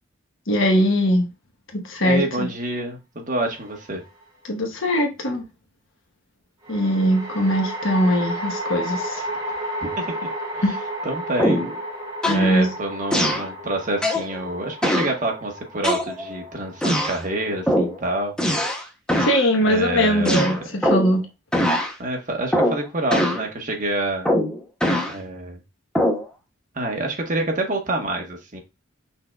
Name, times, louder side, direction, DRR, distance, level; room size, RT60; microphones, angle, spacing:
voice 1, 0.5-1.3 1.7-2.5 4.4-5.4 6.7-9.3 10.6-10.8 12.3-12.7 19.2-21.3, equal, 70° left, 1.2 m, -21 dB
voice 2, 2.0-4.0 9.8-10.0 10.5-10.6 11.0-11.7 12.3-18.3 19.6-20.5 22.0-24.3 25.1-25.6 26.7-28.6, right 2 dB, 40° right, 1.2 m, -27 dB
sound 1, 3.5-4.2 6.6-18.0, equal, 20° right, 1.6 m, -33 dB
sound 2, 11.4-11.8 12.2-12.5 13.1-13.5 14.0-14.3 14.8-15.2 15.8-16.4 16.8-17.2 17.7-18.0 18.4-18.8 19.1-19.4 20.2-21.2 21.5-21.9 22.5-22.8 23.1-23.4 24.2-25.1 25.9-26.3, equal, 5° left, 0.7 m, -21 dB
5.7 x 3.6 x 2.3 m
head